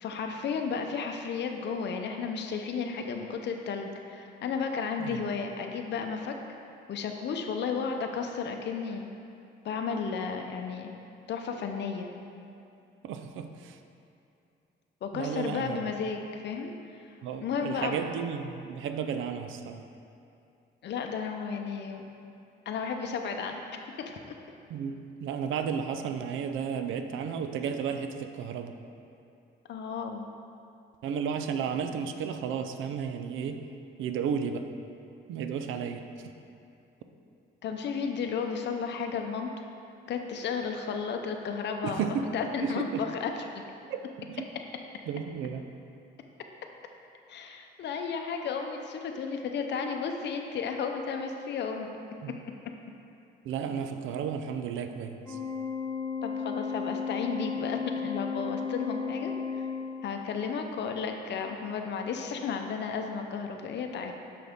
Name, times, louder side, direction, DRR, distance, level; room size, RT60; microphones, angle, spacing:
voice 1, 0.0-6.3 6.9-9.1 9.6-10.9 11.3-12.1 15.0-17.0 17.4-18.0 20.8-22.0 22.7-23.6 24.0-24.1 29.7-30.3 37.6-39.5 40.1-42.1 42.3-43.6 47.3-51.9 56.2-59.7 60.0-64.1, left 5 dB, 60° left, 4 dB, 0.6 m, -33 dB
voice 2, 13.0-13.8 15.1-15.9 17.2-19.8 24.7-28.8 31.0-33.6 34.0-34.7 35.3-36.3 41.8-42.3 42.6-43.1 43.9-44.4 45.1-45.7 52.2-52.4 53.4-55.4, right 7 dB, 80° right, 7 dB, 0.5 m, -33 dB
Organ, 55.2-60.3, left 5 dB, 5° left, 1.3 m, -34 dB
6.2 x 5.8 x 3.5 m, 2.6 s
cardioid pair, 90°, 20 cm